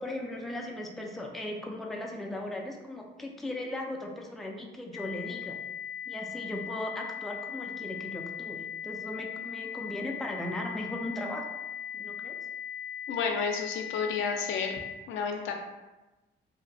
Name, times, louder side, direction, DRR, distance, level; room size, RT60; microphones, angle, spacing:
voice 1, 0.0-5.6 6.1-11.5 11.9-12.4, left 1 dB, ahead, 0 dB, 0.3 m, -37 dB
sound 1, 4.9-14.9, left 9 dB, 30° right, 0.8 m, -39 dB
voice 2, 13.1-14.8 15.1-15.5, left 5 dB, 80° left, 2 dB, 0.4 m, -31 dB
2.7 x 2.1 x 2.6 m, 1.1 s
cardioid pair, 90°, 20 cm